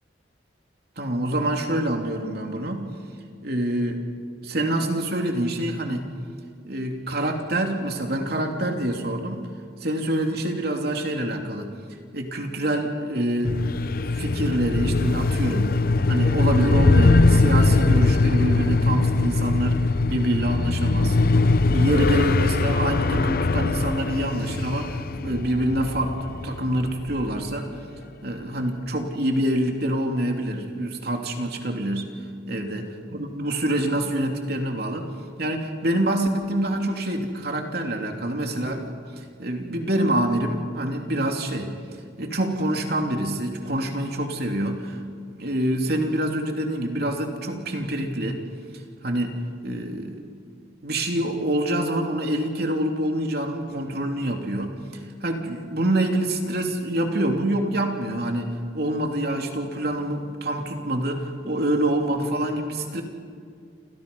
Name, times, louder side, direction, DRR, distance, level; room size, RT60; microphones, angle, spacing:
voice 1, 1.0-2.9 3.4-4.0 4.4-6.1 6.6-9.4 9.8-11.7 12.1-13.5 14.1-15.7 16.1-19.8 20.1-27.7 28.2-32.0 32.5-32.8 33.1-35.1 35.4-38.9 39.4-41.7 42.2-45.0 45.3-48.4 49.0-49.4 49.6-50.2 50.8-63.0, right 1 dB, 55° right, 3 dB, 3.1 m, -26 dB
sound 1, 13.4-27.5, left 3 dB, 50° left, 0.7 m, -21 dB
29.5 x 28.0 x 5.5 m, 2.2 s
head